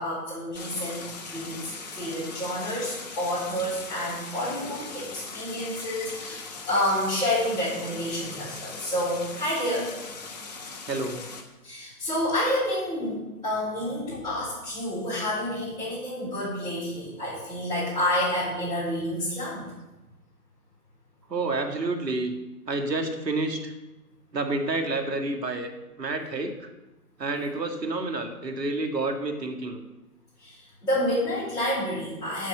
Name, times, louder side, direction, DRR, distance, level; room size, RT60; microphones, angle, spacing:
voice 1, 0.0-1.6 1.9-9.9 11.6-19.7 30.4-32.5, left 1 dB, 10° left, -15 dB, 4.4 m, -29 dB
Stream, 0.5-11.4, left 4 dB, 25° left, 1.0 m, -40 dB
voice 2, 10.9-11.2 21.3-22.3 22.7-23.7 24.3-25.7 26.0-26.7 27.2-29.8, right 2 dB, 80° right, 5 dB, 1.9 m, -29 dB
9.8 x 7.5 x 6.5 m, 1.0 s
figure-of-eight pair, 150°, 48 cm